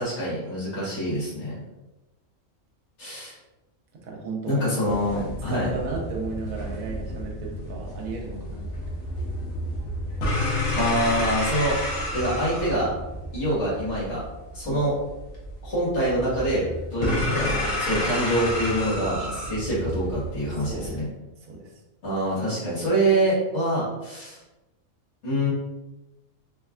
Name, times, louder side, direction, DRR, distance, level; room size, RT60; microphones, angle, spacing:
voice 1, 0.0-1.6 3.0-3.4 4.5-5.7 10.8-12.9 13.3-14.2 14.5-14.9 15.6-16.7 16.9-17.5 17.8-21.1 22.0-24.4 25.2-25.5, right 1 dB, 55° left, -8 dB, 1.9 m, -25 dB
voice 2, 3.9-8.7 14.6-14.8 17.0-17.2 20.5-21.0 21.4-21.7, right 4 dB, 90° right, -1 dB, 1.2 m, -35 dB
sound 1, 4.8-21.0, left 1 dB, 80° left, 1.4 m, -30 dB
3.9 x 3.2 x 2.4 m, 1.0 s
omnidirectional pair, 1.4 m